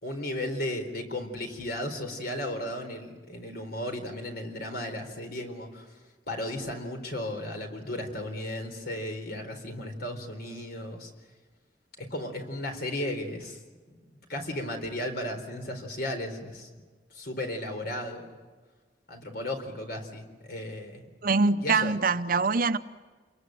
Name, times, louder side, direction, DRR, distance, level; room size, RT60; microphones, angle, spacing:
voice 1, 0.0-6.0 6.3-11.1 12.0-13.6 13.9-14.0 14.3-16.7 17.1-18.3 19.1-21.1 21.6-21.9, left 1 dB, 60° left, 4.1 m, -35 dB
voice 2, 21.2-22.8, right 4 dB, 50° right, 0.8 m, -24 dB
28.0 x 22.5 x 7.8 m
head